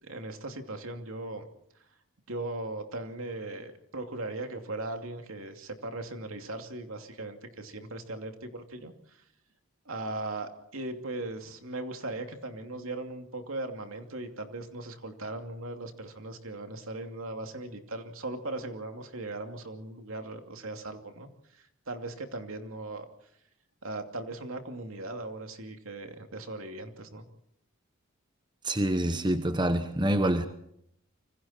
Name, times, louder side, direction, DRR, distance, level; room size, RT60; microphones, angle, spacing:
voice 1, 0.0-1.4 2.3-9.2 9.9-23.1 23.8-27.2, right 2 dB, 75° right, 2.7 m, -38 dB
voice 2, 28.6-30.5, right 1 dB, 20° right, 1.0 m, -26 dB
26.5 x 25.0 x 4.4 m
head